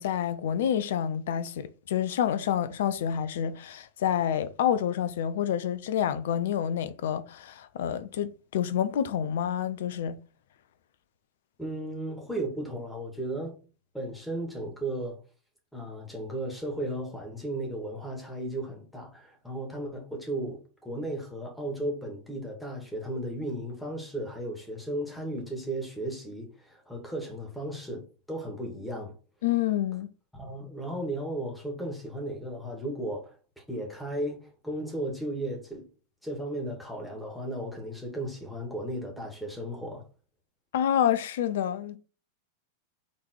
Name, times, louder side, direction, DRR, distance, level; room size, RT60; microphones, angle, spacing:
voice 1, 0.0-10.2 29.4-30.1 40.7-42.0, left 9 dB, 55° left, 0.7 m, -28 dB
voice 2, 11.6-13.6 13.9-15.2 15.7-29.1 30.3-35.9 36.2-40.1, right 1 dB, 5° left, 2.5 m, -35 dB
6.0 x 4.1 x 4.7 m
figure-of-eight pair, 90°, 0 cm